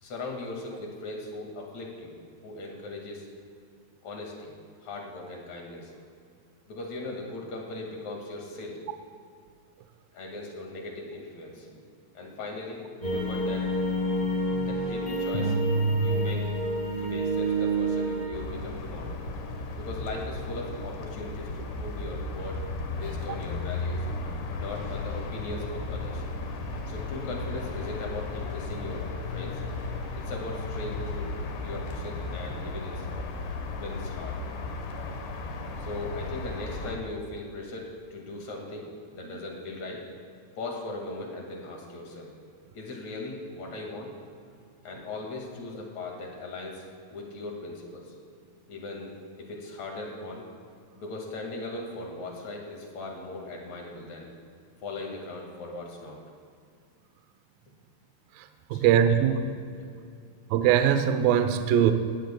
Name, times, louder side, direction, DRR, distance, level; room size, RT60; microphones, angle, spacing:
voice 1, 0.0-2.1 2.4-3.3 4.0-4.5 4.8-5.9 6.7-8.8 10.1-11.8 12.1-13.7 14.6-15.6 16.0-16.5 17.0-19.2 19.8-22.6 22.9-24.1 24.5-26.2 26.9-29.6 30.3-31.3 31.6-33.4 33.8-34.4 35.8-38.9 39.1-40.0 40.6-42.3 42.7-44.1 44.8-46.8 47.1-48.1 48.7-49.1 49.4-50.4 51.0-54.3 54.8-56.2 58.7-59.3 59.8-60.1, left 2 dB, 50° left, 0 dB, 2.7 m, -39 dB
sound 1, 13.0-18.3, right 1 dB, 15° left, 1.6 m, -27 dB
sound 2, 18.3-37.0, left 3 dB, 70° left, 3.0 m, -35 dB
voice 2, 58.7-59.3 60.5-61.9, right 9 dB, 85° right, 8 dB, 2.0 m, -21 dB
18.5 x 16.5 x 2.3 m, 2.2 s
omnidirectional pair, 5.1 m